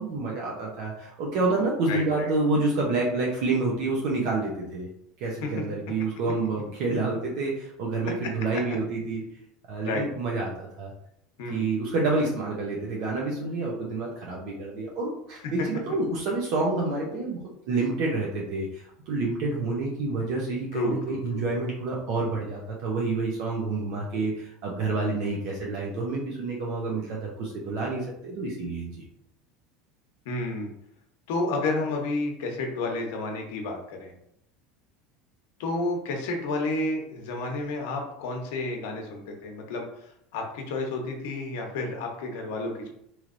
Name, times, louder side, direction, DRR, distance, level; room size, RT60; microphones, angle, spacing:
voice 1, 0.0-4.9 5.2-9.2 9.7-10.9 11.5-17.4 17.7-29.0, right 3 dB, 60° right, -3 dB, 0.7 m, -28 dB
voice 2, 1.9-2.3 5.4-5.5 8.2-8.3 9.8-10.1 11.4-11.7 15.4-15.5 20.7-21.4 30.2-30.7 31.3-34.1 35.6-42.9, left 2 dB, 75° left, 2 dB, 0.8 m, -31 dB
3.2 x 2.8 x 2.5 m, 0.76 s
supercardioid pair, 145°, 0 cm